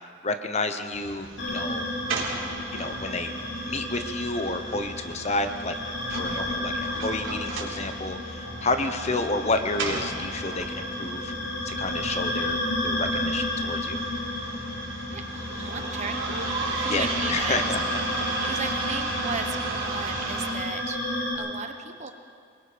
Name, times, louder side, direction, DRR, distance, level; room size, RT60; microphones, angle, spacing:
voice 1, 0.2-1.9 2.7-3.3 3.6-5.8 6.1-11.3 11.6-14.0 16.9-17.8 18.5-18.6, left 2 dB, 35° left, 8 dB, 0.9 m, -30 dB
sound 1, 0.9-20.5, right 3 dB, 80° right, 3.8 m, -35 dB
sound 2, 1.4-21.3, left 1 dB, 70° left, 4.8 m, -32 dB
voice 2, 15.1-16.2 16.8-17.7 18.1-22.1, right 4 dB, 35° right, 6 dB, 1.0 m, -36 dB
23.5 x 21.5 x 5.1 m, 2.3 s
head